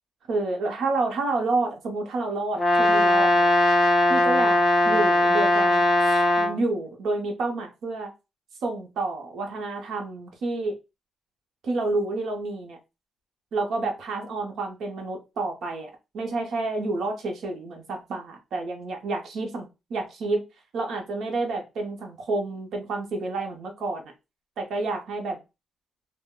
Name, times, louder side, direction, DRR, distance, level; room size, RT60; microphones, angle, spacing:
voice 1, 0.3-3.5 4.1-5.9 6.4-8.1 8.6-10.8 11.6-12.8 13.5-20.4 20.7-24.1 24.6-25.4, right 3 dB, 60° right, 0.7 m, -29 dB
Brass instrument, 2.6-6.6, left 1 dB, 10° left, 1.0 m, -19 dB
2.2 x 2.1 x 3.5 m
cardioid pair, 175°, 0 cm